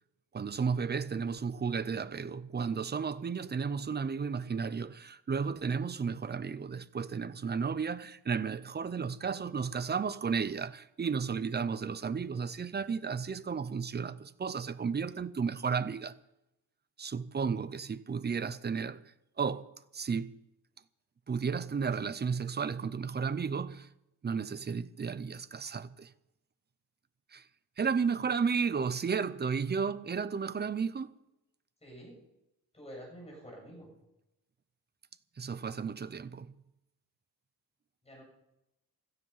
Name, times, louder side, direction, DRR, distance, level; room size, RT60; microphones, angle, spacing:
voice 1, 0.3-16.1 17.0-19.0 19.4-20.3 21.3-23.9 24.2-26.1 27.3-27.5 27.8-31.1 35.4-36.5, right 6 dB, 25° right, 0.5 m, -33 dB
voice 2, 31.8-32.2 32.7-33.9 38.0-38.2, equal, 15° left, 7.6 m, -48 dB
17.0 x 12.5 x 5.6 m
wide cardioid pair, 175°, 39 cm